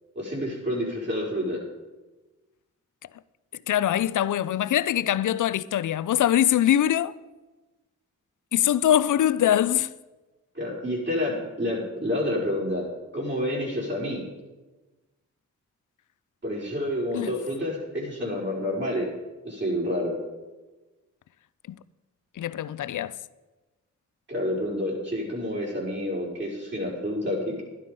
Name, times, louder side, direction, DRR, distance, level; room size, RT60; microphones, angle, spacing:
voice 1, 0.2-1.6 10.5-12.9 13.1-14.2 16.4-19.1 19.4-20.1 24.3-27.6, left 1 dB, 40° right, 5.3 m, -29 dB
voice 2, 3.7-7.1 8.5-9.9 17.1-17.3 21.7-21.8 22.4-23.2, left 11 dB, 90° left, 0.5 m, -23 dB
12.0 x 11.0 x 5.3 m
cardioid pair, 65°, 30 cm